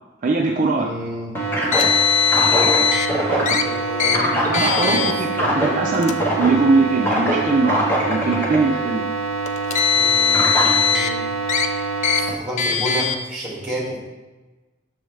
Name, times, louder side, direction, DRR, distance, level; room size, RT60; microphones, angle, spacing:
voice 1, 0.2-0.9 4.5-9.1, right 3 dB, 40° right, 0 dB, 0.4 m, -21 dB
voice 2, 0.8-1.3 2.3-2.8 3.3-5.1 9.9-11.2 12.2-14.0, right 1 dB, 5° right, -6 dB, 1.9 m, -29 dB
sound 1, 1.3-12.3, right 2 dB, 10° left, 1.0 m, -23 dB
Car, 1.7-3.1 3.5-3.6 4.0-4.2 4.5-5.1 5.9-6.1 7.1-7.2 9.5-11.1 11.5-11.7 12.0-12.2 12.6-13.2, left 7 dB, 35° left, 0.3 m, -19 dB
6.2 x 4.9 x 3.2 m, 1.2 s
head